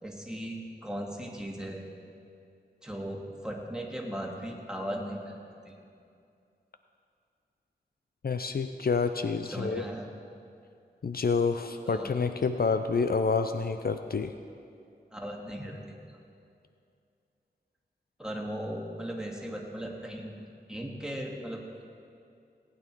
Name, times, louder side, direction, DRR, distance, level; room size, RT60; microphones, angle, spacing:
voice 1, 0.0-1.8 2.8-5.4 5.7-5.8 9.5-10.1 11.9-12.1 15.1-16.2 18.2-20.3 20.7-21.8, equal, 5° right, -1 dB, 2.2 m, -37 dB
voice 2, 8.2-9.8 11.0-14.3, left 4 dB, 60° left, 8 dB, 0.5 m, -28 dB
19.0 x 9.3 x 4.6 m, 2.5 s
wide cardioid pair, 55°, 18 cm